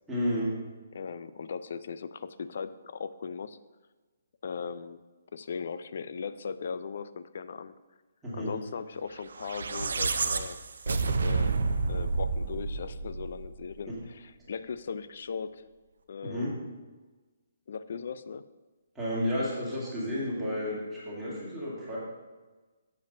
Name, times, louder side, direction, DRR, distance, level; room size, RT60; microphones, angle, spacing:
voice 1, 0.1-0.5 8.2-8.5 13.9-14.0 16.2-16.5 18.9-22.0, equal, 5° right, -10 dB, 2.1 m, -31 dB
voice 2, 0.9-3.6 4.4-5.0 5.3-7.7 8.3-10.6 10.9-11.5 11.9-15.6 16.1-16.6 17.7-18.4, left 6 dB, 55° left, 14 dB, 0.4 m, -38 dB
sound 1, 9.3-13.7, right 4 dB, 80° right, 0.5 m, -29 dB
7.2 x 5.0 x 5.2 m, 1.3 s
hypercardioid pair, 170°, 0 cm